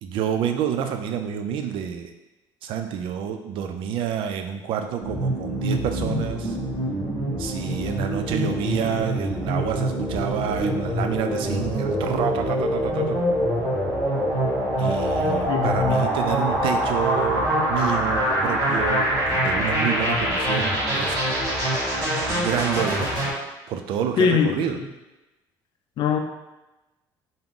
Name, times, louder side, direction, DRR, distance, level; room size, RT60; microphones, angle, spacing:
voice 1, 0.0-2.1 2.6-6.6 7.4-13.2 14.8-21.2 22.3-23.1 23.7-24.8, right 8 dB, 70° right, 6 dB, 0.4 m, -28 dB
sound 1, 5.0-23.3, equal, 40° right, 1.5 m, -24 dB
voice 2, 15.5-16.0 24.2-24.7 26.0-26.2, left 6 dB, 55° left, 5 dB, 0.4 m, -22 dB
3.4 x 2.0 x 3.7 m, 1.0 s
supercardioid pair, 90°, 9 cm